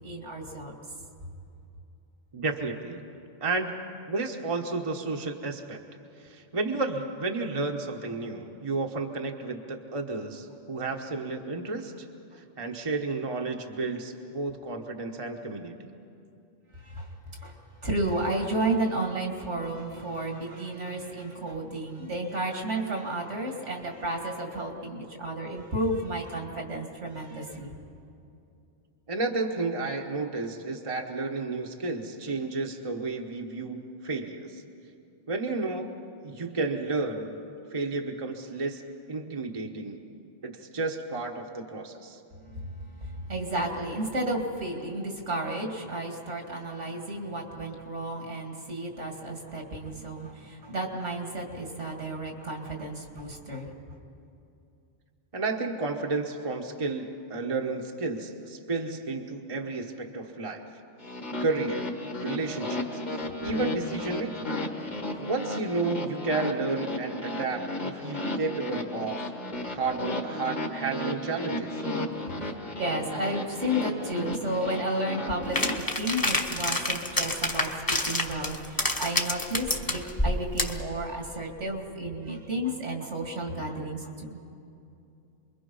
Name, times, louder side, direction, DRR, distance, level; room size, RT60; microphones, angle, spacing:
voice 1, 0.0-0.7 16.7-17.1 17.4-27.7 42.4-53.7 64.8-65.3 72.4-72.5 72.8-84.4, right 1 dB, 75° right, 2 dB, 2.7 m, -32 dB
voice 2, 2.3-3.0 3.4-3.7 4.1-5.8 6.2-11.9 12.3-15.9 29.1-34.6 35.3-35.9 36.2-37.4 37.7-38.8 39.1-40.0 40.4-42.2 55.3-60.6 61.4-61.9 62.2-64.5 65.2-69.2 69.7-71.8, right 3 dB, 30° right, 2 dB, 1.2 m, -32 dB
sound 1, 61.0-75.8, left 1 dB, 35° left, 1.7 m, -34 dB
sound 2, 75.6-80.8, left 1 dB, 20° left, 1.2 m, -28 dB
28.0 x 22.0 x 5.5 m, 2.7 s
omnidirectional pair, 1.2 m